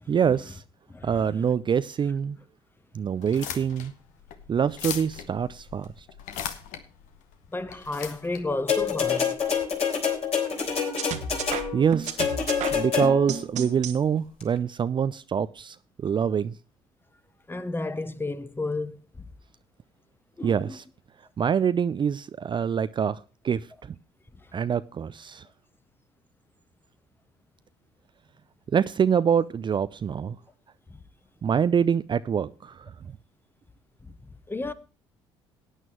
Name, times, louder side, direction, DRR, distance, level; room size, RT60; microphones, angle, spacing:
voice 1, 0.1-0.6 1.0-2.4 2.9-3.9 4.5-5.9 11.7-12.2 12.7-15.8 16.0-16.5 20.4-20.8 21.4-23.2 23.4-23.9 24.5-25.4 28.7-30.4 31.4-32.8, right 7 dB, 35° right, 0.5 m, -25 dB
voice 2, 0.9-1.4 7.5-9.4 17.5-19.0 20.4-20.8 34.5-34.7, left 2 dB, 15° left, 1.1 m, -32 dB
sound 1, 3.1-9.6, left 8 dB, 65° left, 1.3 m, -39 dB
sound 2, 8.7-13.4 14.4-14.5, left 7 dB, 50° left, 3.5 m, -27 dB
sound 3, 11.0-14.0, right 7 dB, 60° right, 1.3 m, -33 dB
17.5 x 9.1 x 3.0 m
hypercardioid pair, 55°, 14 cm